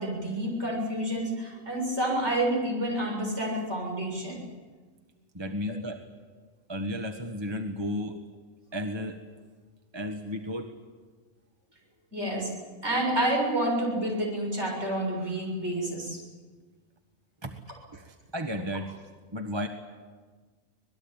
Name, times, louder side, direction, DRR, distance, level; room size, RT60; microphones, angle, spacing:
voice 1, 0.0-4.4 12.1-12.6 12.8-16.2, right 1 dB, 55° right, -1 dB, 7.7 m, -29 dB
voice 2, 5.3-6.0 6.7-8.2 8.7-9.2 9.9-10.7 17.4-17.5 17.9-19.0 19.3-19.7, equal, 20° right, 5 dB, 1.4 m, -33 dB
25.5 x 20.0 x 8.9 m, 1.4 s
omnidirectional pair, 1.4 m